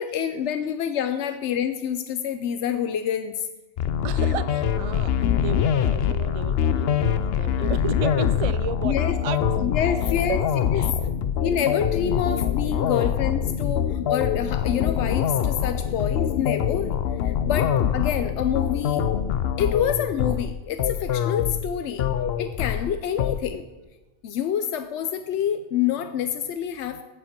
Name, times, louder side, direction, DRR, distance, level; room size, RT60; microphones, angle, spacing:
voice 1, 0.0-3.5 8.8-9.1 9.6-10.4 10.7-10.8 11.4-16.9 17.2-19.1 19.6-22.1 22.4-23.6 24.2-27.0, left 9 dB, 90° left, 9 dB, 0.9 m, -27 dB
sound 1, 3.8-23.4, left 8 dB, 65° left, 0.8 m, -24 dB
voice 2, 4.0-5.1 5.4-9.4 10.0-10.4 10.7-10.9 12.9-13.1 19.8-19.9, right 8 dB, 65° right, 14 dB, 0.3 m, -33 dB
14.5 x 8.6 x 4.5 m, 1.1 s
omnidirectional pair, 1.2 m